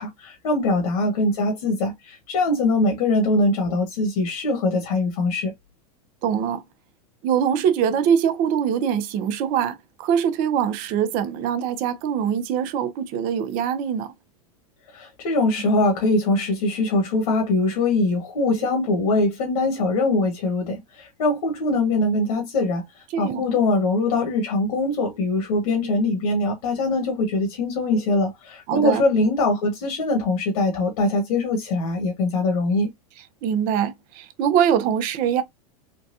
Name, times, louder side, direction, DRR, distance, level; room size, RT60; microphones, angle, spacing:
voice 1, 0.0-5.5 14.9-32.9, left 2 dB, 70° left, 1.4 m, -22 dB
voice 2, 6.2-6.6 7.2-14.1 23.1-23.5 28.7-29.0 33.4-35.4, right 8 dB, 45° right, 0.7 m, -23 dB
4.0 x 2.3 x 2.6 m
hypercardioid pair, 115°, 19 cm